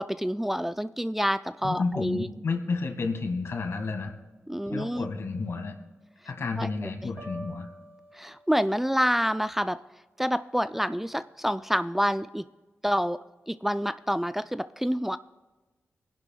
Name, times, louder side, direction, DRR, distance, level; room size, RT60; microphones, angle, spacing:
voice 1, 0.0-2.3 4.5-5.1 6.6-7.1 8.1-9.8 10.2-12.5 12.8-13.2 13.5-15.2, equal, 5° right, 12 dB, 0.3 m, -28 dB
voice 2, 1.6-4.1 4.7-5.8 6.3-7.7, left 4 dB, 65° left, 5 dB, 1.7 m, -31 dB
sound 1, 7.2-9.1, right 1 dB, 40° right, 2.6 m, -46 dB
22.5 x 11.0 x 2.3 m, 1.2 s
wide cardioid pair, 90°, 5 cm